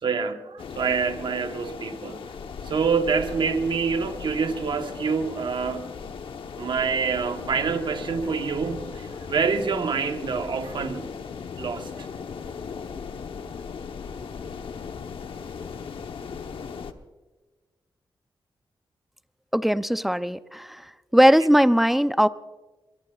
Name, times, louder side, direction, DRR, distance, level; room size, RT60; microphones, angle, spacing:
voice 1, 0.0-2.2 2.6-6.0 6.6-11.1 11.6-12.1, right 5 dB, 65° right, 1.2 m, -26 dB
sound 1, 0.6-16.9, left 6 dB, 80° left, 1.0 m, -37 dB
voice 2, 19.5-22.3, equal, ahead, 0.5 m, -20 dB
23.0 x 22.0 x 2.4 m
wide cardioid pair, 95°, 9 cm